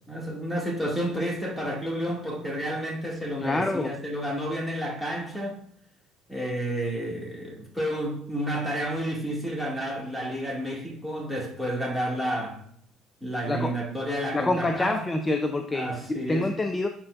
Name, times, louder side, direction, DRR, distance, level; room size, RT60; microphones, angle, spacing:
voice 1, 0.1-5.6 6.3-12.6 13.2-15.1 15.7-16.5, equal, 5° right, 2.3 m, -30 dB
voice 2, 3.4-3.9 13.5-13.7 14.3-16.9, left 2 dB, 20° left, 0.5 m, -27 dB
11.5 x 4.3 x 2.5 m
cardioid pair, 100°, 0 cm